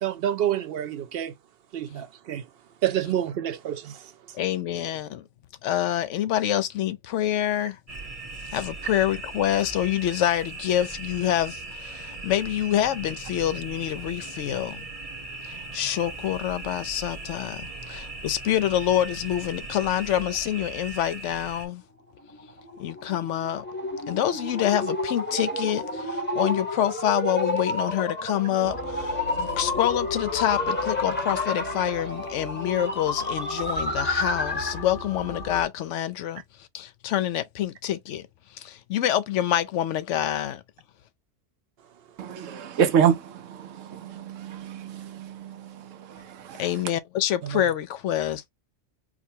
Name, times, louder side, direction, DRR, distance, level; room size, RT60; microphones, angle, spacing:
voice 1, 0.0-1.3 1.7-2.5 2.8-4.1 47.4-47.6, right 11 dB, 60° right, 0.7 m, -28 dB
voice 2, 4.3-5.2 5.6-7.8 8.5-14.9 15.4-21.8 22.8-23.6 24.1-38.2 38.5-40.6 46.6-48.4, left 11 dB, 75° left, 0.9 m, -26 dB
sound 1, 7.9-21.7, right 3 dB, 35° right, 0.9 m, -39 dB
sound 2, 22.2-34.9, left 2 dB, 10° left, 0.8 m, -30 dB
sound 3, 28.6-35.6, left 2 dB, 50° left, 1.7 m, -37 dB
voice 3, 42.2-46.7, right 8 dB, 90° right, 1.1 m, -27 dB
4.8 x 2.2 x 2.7 m
omnidirectional pair, 1.3 m